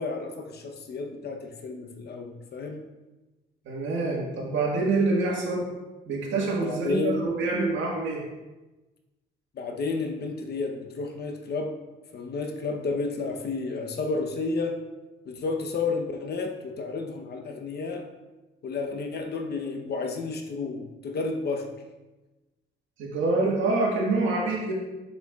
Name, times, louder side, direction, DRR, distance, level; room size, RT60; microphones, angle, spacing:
voice 1, 0.0-2.8 6.6-7.2 9.5-11.7 12.1-14.8 15.3-18.0 18.6-21.7, left 3 dB, 55° left, 4 dB, 0.9 m, -31 dB
voice 2, 3.6-5.7 6.1-8.2 23.0-24.7, right 3 dB, 75° right, -2 dB, 1.6 m, -26 dB
6.7 x 6.5 x 2.4 m, 1.1 s
cardioid pair, 90°, 20 cm